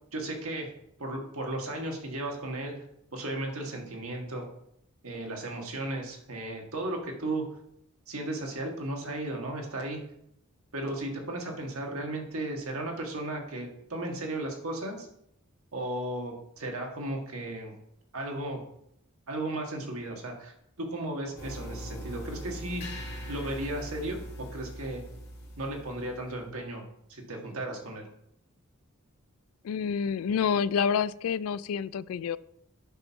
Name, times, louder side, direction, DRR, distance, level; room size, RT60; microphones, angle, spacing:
voice 1, 0.1-0.7 1.0-2.8 3.1-4.4 5.0-7.5 8.1-10.0 10.7-15.1 15.7-17.7 18.1-18.6 19.3-22.8 23.3-25.0 25.6-26.8 27.1-28.1, right 1 dB, 85° right, 2 dB, 1.6 m, -35 dB
sound 1, 21.4-26.5, equal, 50° left, 2.3 m, -41 dB
voice 2, 29.6-32.4, left 7 dB, 80° left, 18 dB, 0.3 m, -28 dB
7.9 x 4.5 x 5.7 m, 0.75 s
head